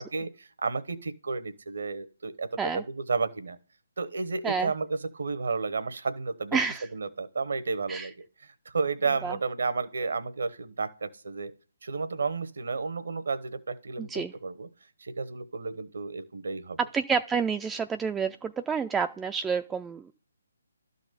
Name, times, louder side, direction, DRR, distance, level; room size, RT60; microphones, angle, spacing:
voice 1, 0.0-3.6 4.0-6.6 6.9-11.5 11.8-14.7 15.0-16.8, right 4 dB, 65° right, 12 dB, 1.0 m, -32 dB
voice 2, 6.5-6.8 7.9-8.1 9.2-9.4 14.0-14.3 16.9-20.1, right 6 dB, 10° right, 7 dB, 0.3 m, -29 dB
12.0 x 4.1 x 6.7 m, 0.42 s
figure-of-eight pair, 145°, 0 cm